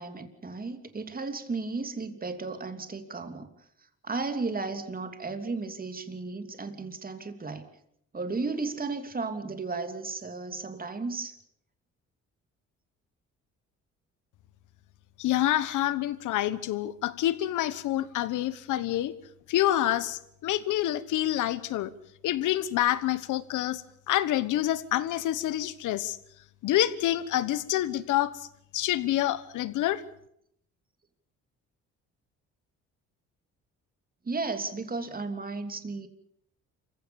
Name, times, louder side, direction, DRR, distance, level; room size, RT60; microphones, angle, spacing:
voice 1, 0.0-3.5 4.0-7.7 8.1-11.4 34.2-36.1, right 3 dB, 30° right, 8 dB, 3.0 m, -34 dB
voice 2, 15.2-19.1 19.5-21.9 22.2-23.8 24.1-26.2 26.6-28.3 28.7-30.0, left 13 dB, 85° left, 16 dB, 1.3 m, -27 dB
27.5 x 16.0 x 7.1 m, 0.72 s
cardioid pair, 90°, 30 cm